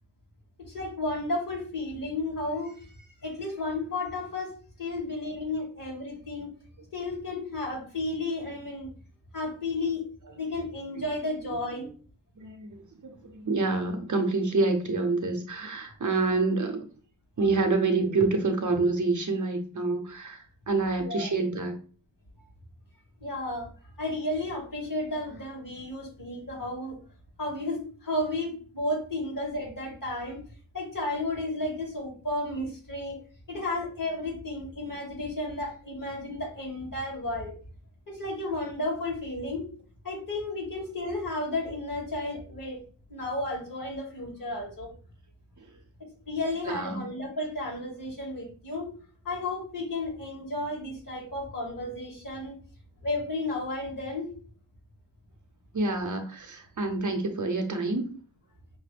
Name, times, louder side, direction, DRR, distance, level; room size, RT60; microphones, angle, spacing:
voice 1, 0.6-4.5 4.8-6.5 6.9-8.9 9.3-10.0 10.4-11.9 21.0-21.3 23.2-23.7 24.0-27.0 27.4-30.4 30.7-33.2 33.5-37.5 38.1-39.7 40.0-42.8 43.1-44.9 46.3-48.9 49.2-52.5 53.0-54.3, left 2 dB, 50° left, -1 dB, 2.1 m, -33 dB
voice 2, 11.4-11.9 12.4-16.9 17.4-21.8 45.6-45.7 46.6-47.1 55.7-58.1, right 3 dB, 45° right, 5 dB, 0.7 m, -27 dB
5.7 x 2.1 x 3.3 m, 0.40 s
wide cardioid pair, 105°, 41 cm